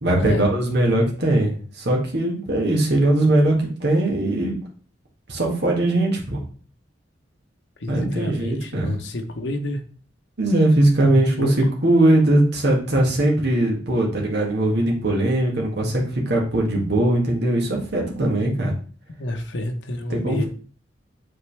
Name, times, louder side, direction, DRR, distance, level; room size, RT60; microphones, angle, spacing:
voice 1, 0.0-3.6 3.8-4.6 5.3-6.4 7.9-9.0 10.4-18.7 20.1-20.5, right 1 dB, 60° right, -1 dB, 1.9 m, -20 dB
voice 2, 7.8-9.8 11.0-11.5 19.2-20.5, left 1 dB, 70° left, 5 dB, 1.0 m, -29 dB
7.9 x 4.0 x 3.4 m, 0.42 s
head